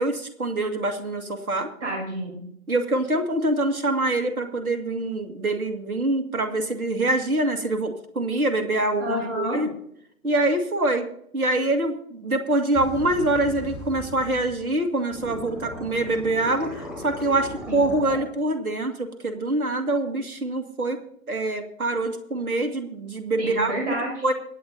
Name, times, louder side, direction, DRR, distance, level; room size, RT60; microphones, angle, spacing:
voice 1, 0.0-1.7 2.7-9.7 10.2-11.1 11.3-16.8 17.0-21.0 21.3-23.7 24.2-24.3, right 2 dB, 75° right, 6 dB, 2.3 m, -25 dB
voice 2, 1.8-2.5 9.0-9.6 17.7-17.9 23.4-24.3, right 1 dB, 55° right, -1 dB, 6.5 m, -29 dB
sound 1, 12.7-14.7 15.1-18.2, left 1 dB, ahead, 2.7 m, -38 dB
24.5 x 9.0 x 2.8 m, 0.70 s
figure-of-eight pair, 135°, 44 cm